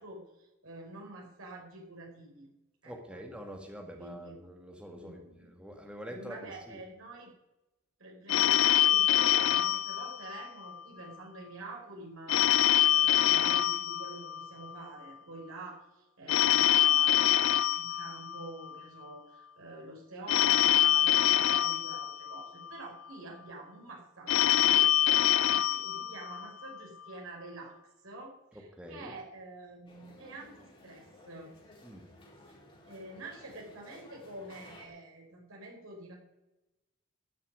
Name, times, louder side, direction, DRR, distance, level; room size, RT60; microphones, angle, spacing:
voice 1, 0.0-2.5 2.8-3.2 4.0-4.3 4.9-5.5 6.1-7.3 8.0-12.4 12.9-17.4 17.7-27.8 28.0-31.5 32.9-36.1, right 2 dB, 75° right, -1 dB, 4.8 m, -47 dB
voice 2, 2.9-6.8 28.5-29.1 31.8-32.0, equal, 5° right, 2 dB, 1.7 m, -45 dB
Telephone, 8.3-10.8 12.3-14.8 16.3-18.8 20.3-22.8 24.3-26.8, left 11 dB, 65° left, 0.4 m, -25 dB
sound 1, 29.9-34.9, left 1 dB, 25° left, 4.7 m, -55 dB
13.0 x 7.3 x 9.5 m, 0.98 s
head